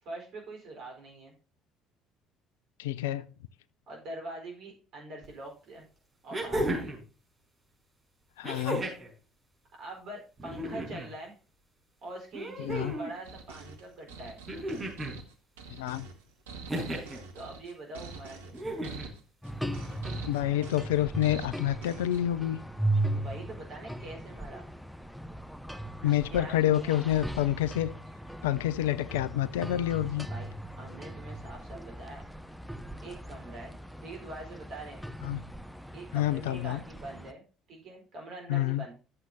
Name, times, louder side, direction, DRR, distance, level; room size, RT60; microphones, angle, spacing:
voice 1, 0.0-1.3 3.9-5.9 6.2-7.0 9.8-11.4 12.0-14.4 17.3-18.6 23.1-24.7 26.0-27.0 30.3-30.5 30.8-32.2 33.0-33.8 34.0-35.0 35.9-37.4 37.7-38.9, right 2 dB, 55° right, 4.3 m, -44 dB
voice 2, 2.8-3.3 8.4-8.8 12.6-12.9 15.7-16.1 20.3-22.6 26.0-27.9 28.4-30.3 35.2-35.4 36.1-36.8 38.5-38.8, left 13 dB, 75° left, 0.5 m, -28 dB
sound 1, 5.2-5.3 6.3-7.0 8.4-9.1 10.4-11.1 12.3-13.1 14.5-15.2 16.7-17.2 18.5-19.1 20.4-20.5, right 1 dB, 25° right, 5.2 m, -34 dB
sound 2, 13.2-22.2, right 4 dB, 75° right, 1.1 m, -45 dB
sound 3, 19.4-37.3, right 1 dB, ahead, 0.8 m, -38 dB
12.0 x 7.6 x 2.7 m
figure-of-eight pair, 55°, 0 cm